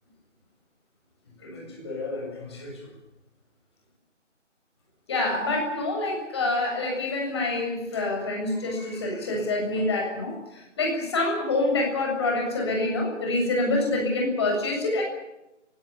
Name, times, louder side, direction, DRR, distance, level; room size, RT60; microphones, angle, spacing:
voice 1, 1.4-2.8 5.1-15.0, left 2 dB, 20° left, 1 dB, 7.2 m, -27 dB
29.5 x 18.0 x 7.1 m, 0.91 s
figure-of-eight pair, 165°, 37 cm